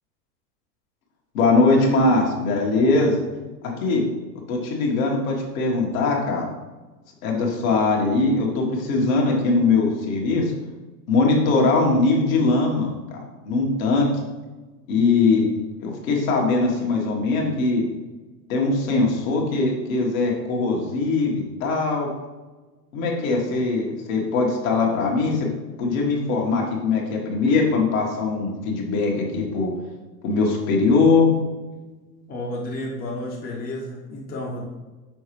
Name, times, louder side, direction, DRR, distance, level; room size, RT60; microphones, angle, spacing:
voice 1, 1.3-3.2 3.8-4.0 4.5-6.4 7.2-10.5 11.1-13.2 13.4-14.1 14.9-15.5 15.8-17.8 18.5-22.1 22.9-25.5 25.8-29.7 30.2-31.3, left 3 dB, 55° left, -1 dB, 1.7 m, -21 dB
voice 2, 32.3-34.6, left 1 dB, 20° left, -3 dB, 1.0 m, -31 dB
6.2 x 4.8 x 3.2 m, 1.2 s
hypercardioid pair, 100°, 48 cm